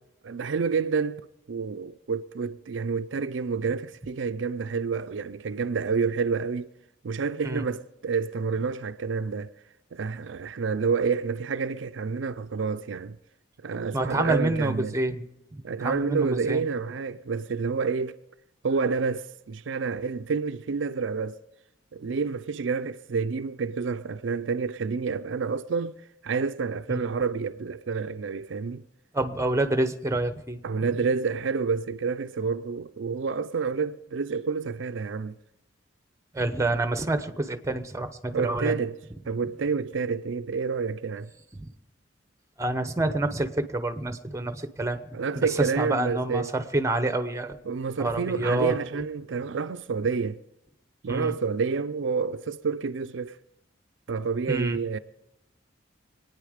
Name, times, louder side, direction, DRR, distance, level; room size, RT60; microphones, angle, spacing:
voice 1, 0.2-1.2 1.5-6.7 7.0-9.5 9.9-13.2 13.6-14.9 15.6-18.2 18.6-21.4 21.9-25.9 26.2-28.9 30.6-35.3 38.3-39.0 39.3-41.3 45.1-46.5 47.7-50.4 51.0-53.4 54.1-55.0, right 5 dB, 70° right, 0.5 m, -29 dB
voice 2, 13.9-15.2 15.5-16.6 26.9-27.0 29.1-30.6 36.3-38.8 41.5-41.6 42.6-45.0 45.4-47.6 48.0-48.7 51.1-51.3 54.5-54.8, right 2 dB, 15° right, 0.8 m, -27 dB
25.0 x 9.4 x 5.0 m
head